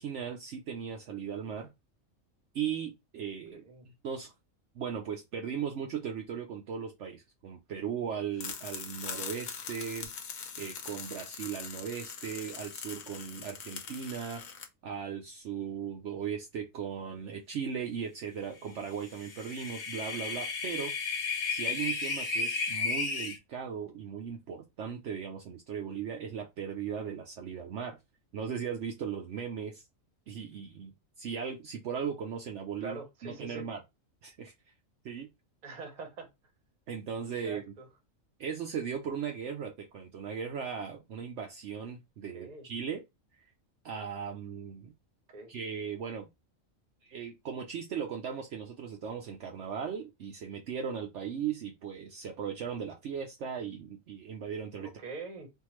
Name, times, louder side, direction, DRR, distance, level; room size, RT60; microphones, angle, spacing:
voice 1, 0.0-1.7 2.5-4.3 4.7-14.4 14.8-20.9 21.5-28.0 28.3-29.8 30.3-33.8 34.2-34.5 35.0-35.3 36.9-37.6 38.4-43.0 43.8-44.9 45.5-46.3 47.0-54.9, right 7 dB, 65° right, 0.9 m, -37 dB
voice 2, 3.5-3.9 21.8-22.0 32.8-33.7 35.6-36.3 37.4-37.9 42.3-42.7 45.3-45.5 54.8-55.5, right 3 dB, 35° right, 0.9 m, -44 dB
sound 1, 8.4-14.7, left 6 dB, 85° left, 1.2 m, -42 dB
sound 2, 19.1-23.4, left 4 dB, 50° left, 1.0 m, -33 dB
3.6 x 2.6 x 3.0 m
omnidirectional pair, 1.4 m